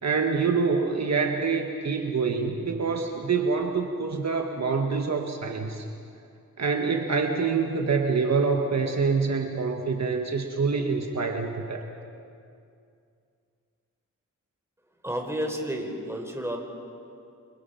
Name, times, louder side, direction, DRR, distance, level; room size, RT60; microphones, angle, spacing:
voice 1, 0.0-5.8 6.6-11.9, right 5 dB, 55° right, 3 dB, 1.6 m, -26 dB
voice 2, 15.0-16.6, equal, 10° right, 2 dB, 4.5 m, -31 dB
29.5 x 26.5 x 5.8 m, 2.5 s
wide cardioid pair, 90°, 32 cm